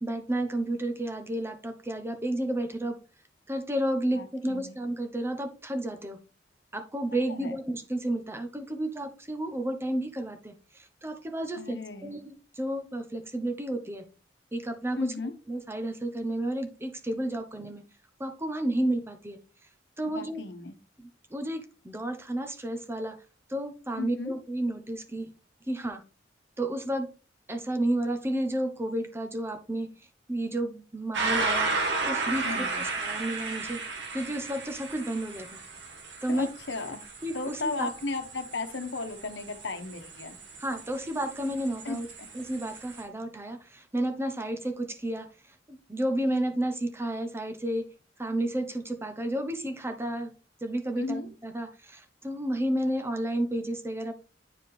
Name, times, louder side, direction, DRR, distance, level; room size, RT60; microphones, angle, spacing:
voice 1, 0.0-3.0 3.5-6.2 6.7-14.1 14.5-15.1 15.5-17.8 18.2-19.4 20.0-20.4 21.0-23.2 23.5-25.3 25.7-26.0 26.6-27.1 27.5-29.9 30.3-31.7 32.0-33.8 34.1-35.6 36.2-36.5 37.2-37.9 40.6-42.1 42.3-45.3 45.7-47.9 48.2-50.3 50.6-54.1, right 1 dB, 15° right, 0.9 m, -31 dB
voice 2, 4.1-4.8 7.3-7.6 11.6-12.2 15.0-15.3 20.0-20.8 24.0-24.3 32.4-32.9 36.3-37.0 37.3-40.4 41.8-42.3 51.0-51.3, left 3 dB, 70° left, 1.1 m, -35 dB
sound 1, 31.1-43.0, right 3 dB, 70° right, 2.2 m, -34 dB
9.4 x 4.7 x 3.3 m
head